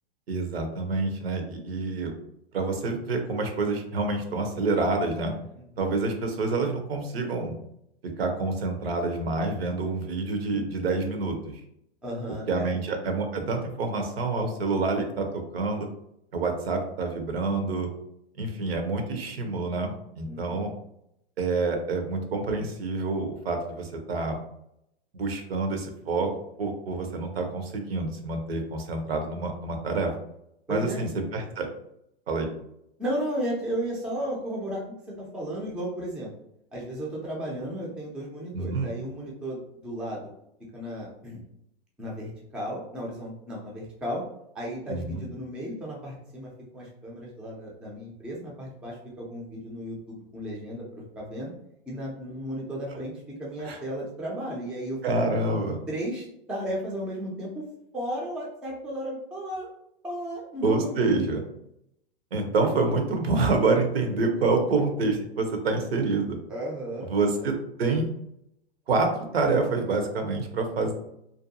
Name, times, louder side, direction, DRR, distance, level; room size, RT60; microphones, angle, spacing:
voice 1, 0.3-2.1 2.5-5.3 5.8-7.5 8.0-11.6 12.5-15.9 16.3-17.9 18.4-20.7 21.4-24.4 25.1-26.3 26.6-30.1 30.7-31.7 32.3-32.5 38.5-38.9 44.9-45.2 53.6-53.8 55.0-55.8 60.6-61.4 62.3-66.4 67.1-68.1 68.9-70.9, right 3 dB, 75° right, 4 dB, 0.7 m, -27 dB
voice 2, 12.0-12.8 20.3-20.7 30.7-31.0 33.0-36.3 36.7-40.3 40.7-41.4 42.0-44.2 44.5-51.5 51.9-55.1 55.9-57.6 57.9-59.7 60.0-61.2 66.5-67.1 67.4-67.5, equal, 5° right, -3 dB, 0.3 m, -34 dB
2.6 x 2.2 x 2.6 m, 0.77 s
hypercardioid pair, 115°, 31 cm